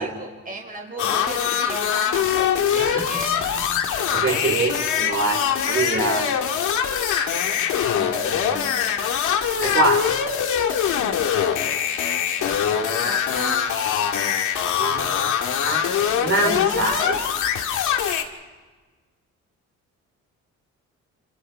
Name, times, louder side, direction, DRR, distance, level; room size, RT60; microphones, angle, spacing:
voice 1, 0.0-3.5 12.4-12.6 13.0-13.7, right 3 dB, 30° right, 1 dB, 5.2 m, -36 dB
sound 1, 1.0-18.2, left 8 dB, 80° left, 2.1 m, -23 dB
voice 2, 4.1-6.3 8.0-8.7 9.6-10.1 14.8-15.1 15.6-15.8 16.2-17.2, right 3 dB, 45° right, -1 dB, 5.1 m, -24 dB
30.0 x 27.0 x 3.6 m, 1.3 s
cardioid pair, 90°, 30 cm